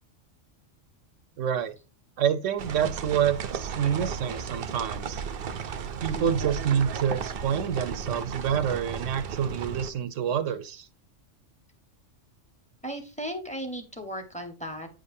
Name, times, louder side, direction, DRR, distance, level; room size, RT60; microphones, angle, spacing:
voice 1, 1.4-1.7 2.2-5.2 6.0-10.9, right 8 dB, 80° right, 1.1 m, -27 dB
sound 1, 2.6-9.9, right 7 dB, 55° right, 0.8 m, -34 dB
voice 2, 12.8-14.9, equal, 5° left, 1.1 m, -36 dB
9.1 x 5.1 x 2.7 m
omnidirectional pair, 1.3 m